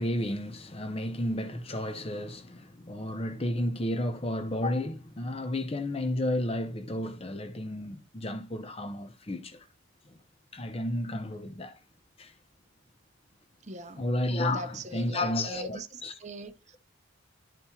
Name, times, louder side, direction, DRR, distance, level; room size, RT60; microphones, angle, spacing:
voice 1, 0.0-9.7 10.1-10.2 10.5-11.8 12.2-12.3 14.0-16.1, left 1 dB, 30° left, 0.6 m, -32 dB
voice 2, 13.6-14.1 14.5-16.8, right 1 dB, 35° right, 0.7 m, -42 dB
12.5 x 4.3 x 2.3 m
head